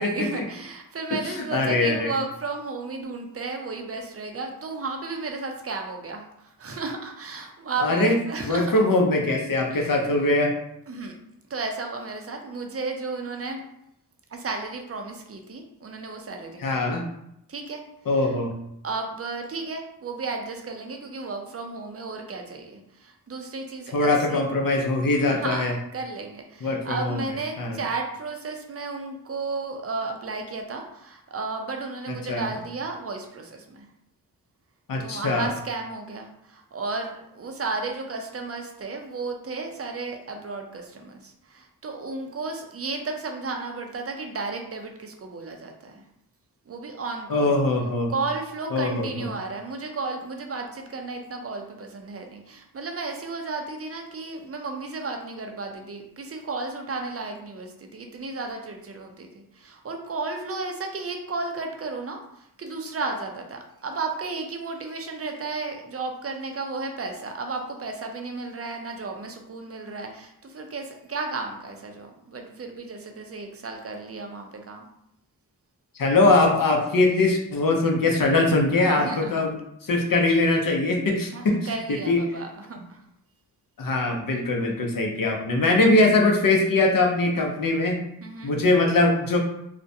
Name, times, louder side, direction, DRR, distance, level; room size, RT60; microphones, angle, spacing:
voice 1, 0.0-8.9 9.7-10.1 10.9-11.2 11.5-13.6 14.3-16.9 17.5-17.8 18.2-18.3 18.8-24.5 25.1-33.9 35.0-46.0 46.7-47.5 48.1-74.9 79.0-79.4 81.3-83.0 88.2-88.5, right 3 dB, 35° right, 3 dB, 0.5 m, -33 dB
voice 2, 1.5-2.1 7.8-8.2 8.5-10.6 16.6-17.0 18.1-18.5 23.9-25.7 26.6-27.2 27.6-27.8 32.3-32.5 34.9-35.5 47.3-48.1 48.7-49.3 76.0-79.5 79.8-81.7 82.1-82.2 83.8-88.0 88.4-89.4, left 2 dB, 55° left, 1 dB, 0.6 m, -22 dB
2.4 x 2.1 x 2.6 m, 0.78 s
cardioid pair, 40°, 40 cm